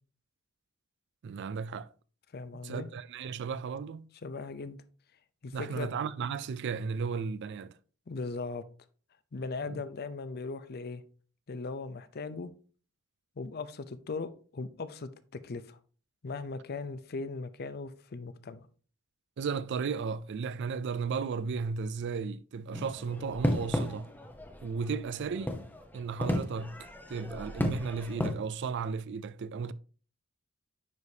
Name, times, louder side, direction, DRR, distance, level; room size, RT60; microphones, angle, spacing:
voice 1, 1.2-1.9 2.6-4.1 5.5-7.7 9.6-9.8 19.4-24.1 24.6-25.6 25.9-29.7, right 5 dB, 55° right, 0.4 m, -35 dB
voice 2, 2.3-2.9 4.2-4.8 5.4-5.9 8.1-8.6 9.3-11.0 11.5-12.5 13.4-15.8 16.2-18.7, left 3 dB, 50° left, 0.6 m, -38 dB
sound 1, 22.7-28.4, left 1 dB, 10° left, 0.8 m, -34 dB
9.4 x 4.9 x 2.8 m
head